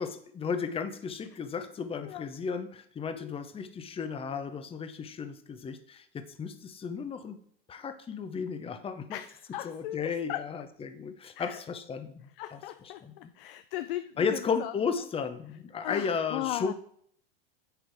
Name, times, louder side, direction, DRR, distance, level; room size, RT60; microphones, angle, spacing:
voice 1, 0.0-7.4 7.7-9.2 9.6-13.1 14.2-16.7, left 6 dB, 20° left, 9 dB, 0.9 m, -34 dB
voice 2, 9.1-10.4 11.4-11.6 12.4-14.7 15.8-16.7, left 14 dB, 60° left, 11 dB, 0.6 m, -37 dB
7.8 x 6.8 x 4.7 m, 0.63 s
hypercardioid pair, 95°, 30 cm